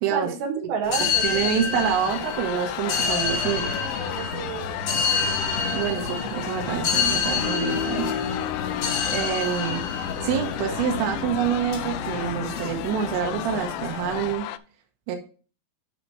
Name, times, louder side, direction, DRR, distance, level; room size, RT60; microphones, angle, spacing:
voice 1, 0.1-1.8 3.8-4.8, right 6 dB, 65° right, 2 dB, 3.8 m, -31 dB
sound 1, 0.8-14.3, left 5 dB, 50° left, 2.1 m, -29 dB
voice 2, 1.0-3.7 5.7-8.2 9.1-9.8 10.2-14.5 15.1-15.2, right 8 dB, 90° right, 2 dB, 3.7 m, -27 dB
sound 2, 1.7-14.6, left 13 dB, 85° left, 2.5 m, -33 dB
10.5 x 4.2 x 4.8 m, 0.38 s
omnidirectional pair, 5.7 m